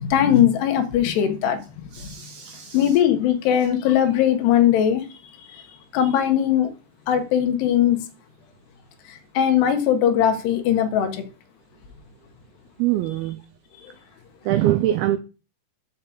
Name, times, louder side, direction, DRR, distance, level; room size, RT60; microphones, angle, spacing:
voice 1, 0.0-2.1 2.7-5.1 5.5-5.6 5.9-6.7 7.1-8.1 9.1-11.3 13.8-13.9, left 10 dB, 75° left, 3.2 m, -20 dB
voice 2, 1.9-3.0 12.8-13.4 14.5-15.2, right 13 dB, 85° right, 2.2 m, -23 dB
6.5 x 5.8 x 7.1 m
omnidirectional pair, 5.0 m